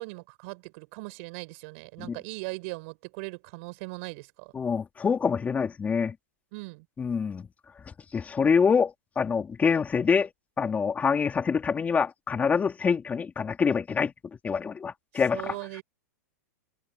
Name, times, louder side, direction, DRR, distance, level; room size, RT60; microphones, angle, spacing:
voice 1, 0.0-4.5 6.5-6.9 15.3-15.8, right 28 dB, 55° right, 6.9 m, -39 dB
voice 2, 4.5-6.1 7.0-7.5 8.1-10.3 10.6-14.1 14.4-15.5, left 6 dB, 15° left, 3.2 m, -25 dB
hypercardioid pair, 125°, 9 cm